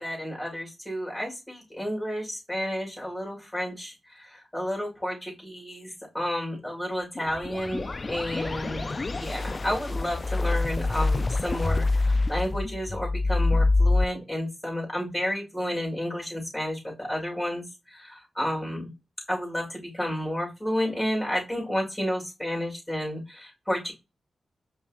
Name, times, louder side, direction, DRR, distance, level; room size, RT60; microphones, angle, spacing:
voice 1, 0.0-8.9 9.2-18.9 19.3-23.9, equal, 15° left, -1 dB, 2.8 m, -31 dB
sound 1, 7.2-14.0, left 3 dB, 40° left, 0.3 m, -26 dB
5.3 x 3.1 x 2.4 m, 0.25 s
cardioid pair, 55°, 0 cm